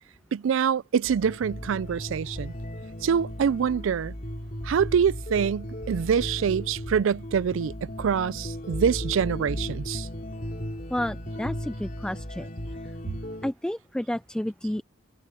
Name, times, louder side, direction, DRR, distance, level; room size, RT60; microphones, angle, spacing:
voice 1, 0.3-2.5 3.0-4.1 4.6-10.1, right 7 dB, 80° right, 0.4 m, -25 dB
sound 1, 1.0-13.5, equal, 40° left, 4.1 m, -36 dB
voice 2, 10.9-12.5 13.4-14.8, left 1 dB, 5° left, 0.3 m, -31 dB
head